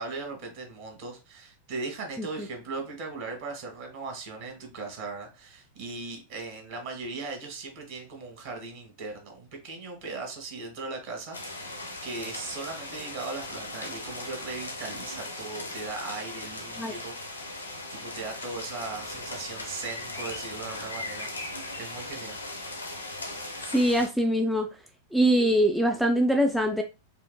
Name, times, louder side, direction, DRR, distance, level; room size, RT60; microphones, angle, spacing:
voice 1, 0.0-17.6 17.9-22.4, right 3 dB, 50° right, 1.4 m, -38 dB
sound 1, 11.3-24.1, left 2 dB, 80° left, 0.8 m, -38 dB
voice 2, 23.7-24.7 25.1-26.8, equal, ahead, 0.3 m, -23 dB
4.6 x 2.5 x 2.2 m
figure-of-eight pair, 90°, 0 cm